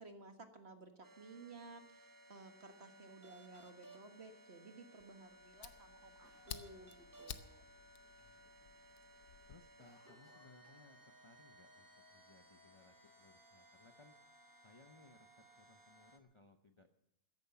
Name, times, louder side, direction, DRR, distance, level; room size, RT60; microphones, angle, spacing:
voice 1, 0.0-7.7, right 3 dB, 45° right, 6 dB, 1.8 m, -56 dB
sound 1, 1.0-16.2, right 1 dB, 15° right, 0.9 m, -62 dB
Fire, 5.0-9.6, left 9 dB, 80° left, 1.3 m, -53 dB
Cough, 6.2-7.7 8.1-8.2 8.5-8.9 9.2-11.5 11.7-11.8 12.6-13.4, right 1 dB, 80° right, 4.7 m, -70 dB
voice 2, 8.1-8.7 9.5-14.1 14.6-16.9, left 3 dB, 25° left, 6 dB, 0.7 m, -65 dB
14.0 x 10.5 x 7.0 m, 0.87 s
omnidirectional pair, 1.7 m